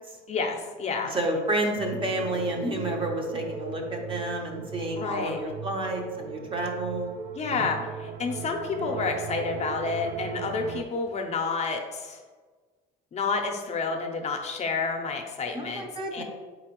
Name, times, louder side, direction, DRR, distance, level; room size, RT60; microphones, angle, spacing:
voice 1, 0.3-1.1 5.0-5.4 7.4-12.2 13.1-16.2, left 4 dB, 40° left, 3 dB, 0.6 m, -30 dB
voice 2, 1.1-7.1 7.5-7.6 8.9-9.1 15.5-16.2, right 1 dB, 30° right, 1 dB, 0.8 m, -30 dB
sound 1, 1.8-10.8, right 6 dB, 60° right, 0.5 m, -37 dB
4.2 x 3.9 x 3.0 m, 1.4 s
cardioid pair, 110°, 17 cm